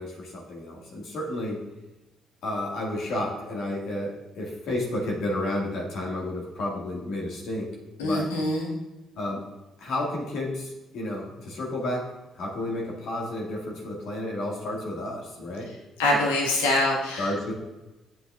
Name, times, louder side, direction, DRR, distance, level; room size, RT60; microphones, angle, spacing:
voice 1, 0.0-1.6 2.4-7.7 8.0-8.3 9.2-9.4 9.8-15.7 17.2-17.5, left 1 dB, 65° left, -2 dB, 2.0 m, -31 dB
voice 2, 8.0-8.7 16.0-17.3, left 1 dB, 80° left, -1 dB, 1.5 m, -24 dB
8.0 x 7.7 x 2.4 m, 1.0 s
figure-of-eight pair, 45°, 0 cm